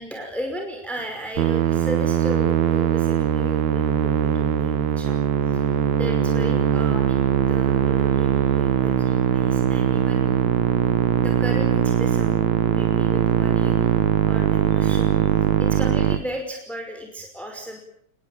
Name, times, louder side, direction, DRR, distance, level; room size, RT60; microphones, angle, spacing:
voice 1, 0.0-5.2 5.5-10.5 11.2-12.4 12.7-17.8, equal, ahead, 3 dB, 5.2 m, -35 dB
Musical instrument, 1.4-16.2, right 10 dB, 70° right, 2.6 m, -21 dB
28.5 x 21.0 x 9.0 m, 0.66 s
omnidirectional pair, 3.5 m